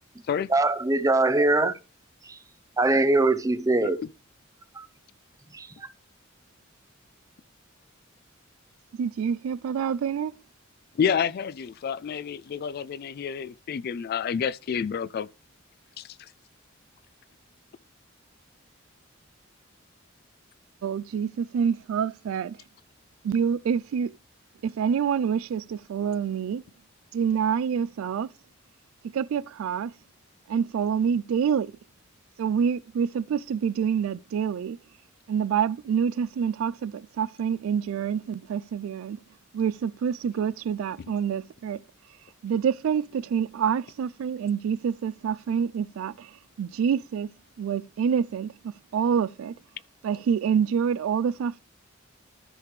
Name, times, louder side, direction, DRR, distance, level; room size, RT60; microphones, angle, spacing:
voice 1, 0.5-1.8 2.3-2.4 2.8-4.0 4.8-4.9 5.5-5.9, right 2 dB, 15° right, 0.5 m, -22 dB
voice 2, 9.0-10.3 20.8-22.6 23.2-24.1 24.6-26.6 27.1-28.3 29.0-29.9 30.5-31.7 32.4-34.8 35.3-39.2 39.5-41.8 42.4-47.3 47.6-49.5 50.0-51.6, right 7 dB, 80° right, 0.3 m, -27 dB
voice 3, 11.0-15.3 16.0-16.3, left 7 dB, 50° left, 0.3 m, -29 dB
13.5 x 5.0 x 3.2 m
head